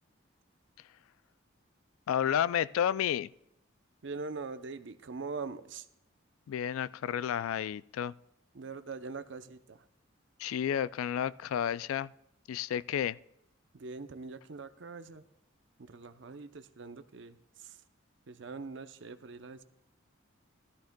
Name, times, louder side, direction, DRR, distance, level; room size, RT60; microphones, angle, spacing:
voice 1, 2.1-3.3 6.5-8.1 10.4-12.1 12.5-13.2, left 9 dB, 90° left, 0.3 m, -31 dB
voice 2, 4.0-5.9 8.5-9.9 13.7-15.2 15.8-17.8 18.3-19.6, right 4 dB, 60° right, 0.6 m, -43 dB
17.0 x 13.0 x 2.2 m
head